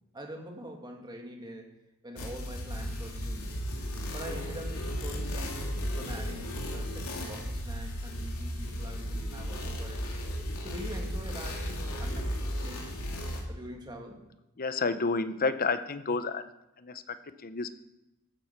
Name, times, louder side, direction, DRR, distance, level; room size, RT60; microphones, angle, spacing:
voice 1, 0.1-1.7 2.0-3.6 4.1-5.6 5.9-10.0 10.6-13.0 13.5-14.2, right 1 dB, 20° right, 2 dB, 2.1 m, -44 dB
sound 1, 2.2-13.4, equal, 80° left, 2.9 m, -35 dB
voice 2, 14.6-16.5 16.8-17.8, left 4 dB, 40° left, 12 dB, 0.7 m, -30 dB
15.0 x 8.8 x 6.0 m, 0.97 s
head